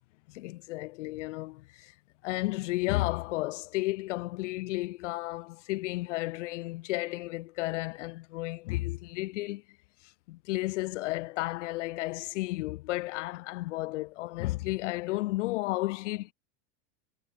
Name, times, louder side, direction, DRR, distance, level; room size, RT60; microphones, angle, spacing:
voice 1, 0.3-1.9 2.2-9.6 10.0-16.3, left 20 dB, 85° left, 0.7 m, -33 dB
supercardioid pair, 175°, 35 cm